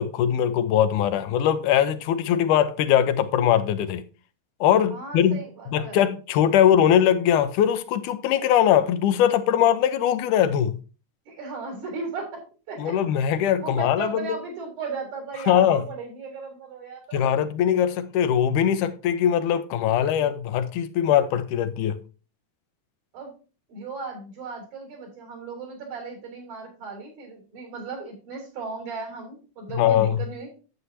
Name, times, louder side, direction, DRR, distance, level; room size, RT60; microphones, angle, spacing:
voice 1, 0.0-4.0 4.6-5.4 5.7-10.8 12.8-14.4 15.5-15.8 17.1-22.0 29.8-30.3, left 10 dB, 85° left, 2.3 m, -21 dB
voice 2, 4.9-6.0 11.3-12.4 12.7-13.2 13.6-17.2 23.1-23.3 23.7-30.5, right 4 dB, 75° right, 5.1 m, -36 dB
9.7 x 8.1 x 2.8 m
omnidirectional pair, 3.5 m